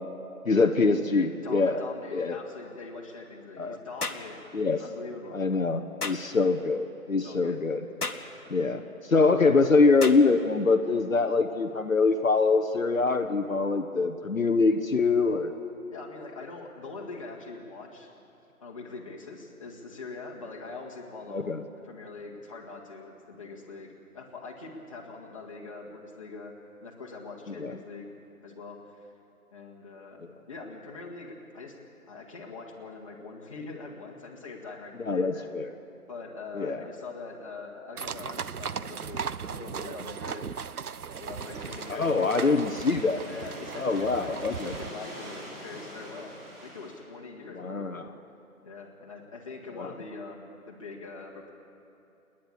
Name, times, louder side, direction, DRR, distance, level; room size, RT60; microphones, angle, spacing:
voice 1, 0.4-1.8 2.1-2.4 3.6-3.8 4.5-4.8 5.3-7.9 8.5-8.8 9.1-15.5 21.3-21.6 27.6-27.8 35.0-35.7 36.5-36.8 41.9-43.2 43.8-44.7 47.6-48.0 49.8-49.9, left 4 dB, 65° left, 5 dB, 1.1 m, -24 dB
voice 2, 1.1-4.5 4.8-5.4 6.0-6.3 7.2-7.6 15.9-18.1 18.6-21.5 21.8-26.5 26.8-28.1 28.4-29.1 29.5-30.2 30.5-31.8 32.1-35.6 36.1-40.5 41.2-42.6 43.2-46.3 46.6-48.1 48.6-51.5, left 3 dB, 20° left, -3 dB, 1.9 m, -43 dB
sound 1, 4.0-4.3 6.0-6.2 8.0-8.3 10.0-10.2, left 3 dB, 85° left, 1.6 m, -32 dB
sound 2, 38.0-44.9, right 6 dB, 80° right, 0.7 m, -37 dB
sound 3, 41.4-47.0, equal, 40° right, 5.6 m, -44 dB
28.5 x 10.5 x 9.9 m, 2.8 s
figure-of-eight pair, 165°, 44 cm